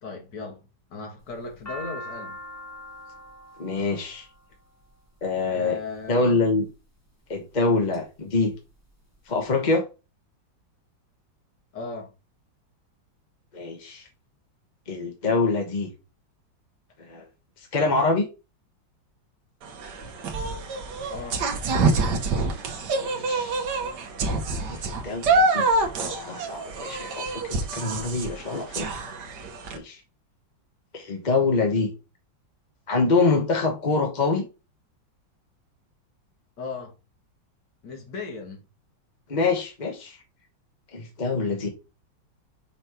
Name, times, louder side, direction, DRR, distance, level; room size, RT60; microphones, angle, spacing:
voice 1, 0.0-2.4 5.5-6.4 11.7-12.1 21.1-21.5 36.6-36.9 37.8-38.6, left 4 dB, 60° left, 2.3 m, -36 dB
sound 1, 1.2-5.4 6.3-6.7 7.3-8.0 8.3-8.4 8.6-9.4, equal, 10° left, 1.3 m, -42 dB
voice 2, 3.6-4.3 5.2-5.8 6.1-6.6 7.3-8.5 9.3-9.8 13.5-14.0 14.9-15.9 17.0-17.2 17.7-18.2 23.0-23.6 24.7-25.7 26.0-29.0 29.7-30.0 30.9-31.9 32.9-34.4 39.3-40.2 40.9-41.7, left 3 dB, 30° left, 1.0 m, -25 dB
sound 2, 19.6-29.8, right 3 dB, 65° right, 1.5 m, -26 dB
5.6 x 3.1 x 5.6 m
omnidirectional pair, 2.1 m